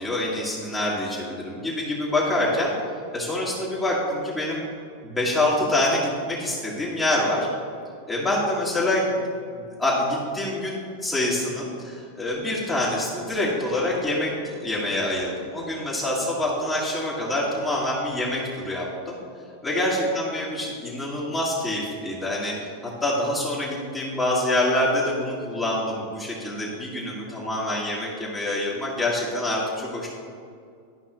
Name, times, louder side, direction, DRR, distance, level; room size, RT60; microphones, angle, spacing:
voice 1, 0.0-2.7 3.1-4.7 5.0-7.5 8.1-9.2 9.5-19.2 19.6-20.1 20.3-22.6 23.0-30.1, left 1 dB, 15° left, -8 dB, 1.9 m, -26 dB
12.5 x 5.3 x 3.1 m, 2.3 s
hypercardioid pair, 95°, 0 cm